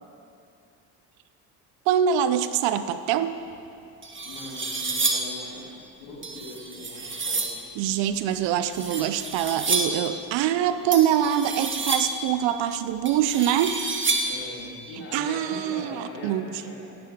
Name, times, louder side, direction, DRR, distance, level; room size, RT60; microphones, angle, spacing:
voice 1, 1.9-3.3 7.8-13.8 15.1-16.5, right 10 dB, 70° right, 12 dB, 0.8 m, -24 dB
sound 1, 3.5-3.6 4.0-5.4 6.2-7.6 8.6-10.1 10.9-12.3 13.0-14.5, right 3 dB, 25° right, 1.9 m, -29 dB
voice 2, 4.2-7.6 14.2-16.9, left 2 dB, 80° left, -4 dB, 3.5 m, -41 dB
15.5 x 10.0 x 5.2 m, 2.6 s
hypercardioid pair, 65°, 46 cm